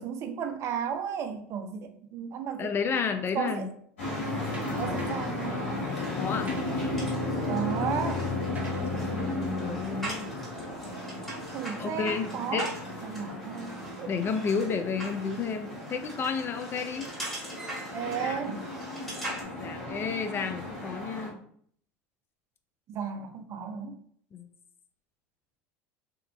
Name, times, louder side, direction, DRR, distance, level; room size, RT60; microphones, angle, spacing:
voice 1, 0.0-2.7 3.3-3.7 4.8-5.9 7.5-8.2 11.5-12.7 13.0-14.1 17.9-18.7 22.9-23.9, right 7 dB, 45° right, 7 dB, 0.4 m, -34 dB
voice 2, 2.6-3.7 6.2-6.6 8.9-10.2 11.8-12.7 14.1-17.1 18.2-18.6 19.5-21.4 24.3-24.5, left 5 dB, 35° left, 8 dB, 0.3 m, -31 dB
sound 1, 4.0-21.3, left 2 dB, 90° left, 1.3 m, -34 dB
sound 2, 4.5-5.4 6.1-10.8, right 2 dB, 20° right, 0.8 m, -47 dB
sound 3, 5.9-19.4, right 1 dB, 5° left, 1.3 m, -42 dB
2.8 x 2.4 x 2.2 m, 0.62 s
hypercardioid pair, 85°, 7 cm